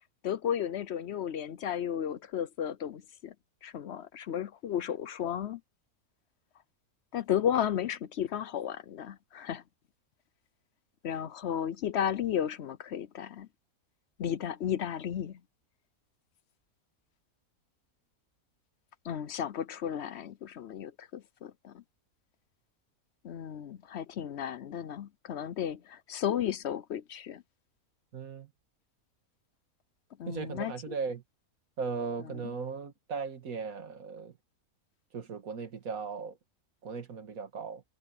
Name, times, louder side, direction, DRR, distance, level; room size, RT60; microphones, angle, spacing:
voice 1, 0.2-3.3 3.6-5.6 7.1-9.6 11.0-13.5 14.2-15.4 19.0-21.8 23.2-27.4 30.2-30.9 32.2-32.5, left 9 dB, 60° left, 0.8 m, -34 dB
voice 2, 28.1-28.5 30.3-31.2 31.8-34.3 35.1-36.4 36.8-37.8, right 5 dB, 70° right, 2.1 m, -37 dB
omnidirectional pair, 1.5 m